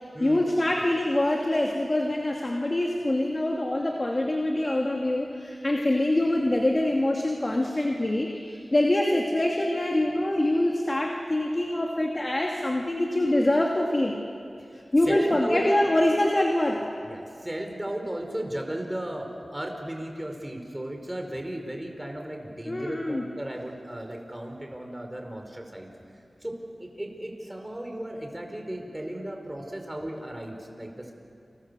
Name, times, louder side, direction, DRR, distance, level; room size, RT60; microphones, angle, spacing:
voice 1, 0.2-14.2 14.9-16.9 22.7-23.2, left 1 dB, 35° left, 0 dB, 2.5 m, -25 dB
voice 2, 14.6-15.7 17.0-25.9 26.4-31.1, right 1 dB, 15° right, 3 dB, 4.7 m, -35 dB
30.0 x 26.5 x 7.0 m, 2.5 s
wide cardioid pair, 75°, 0 cm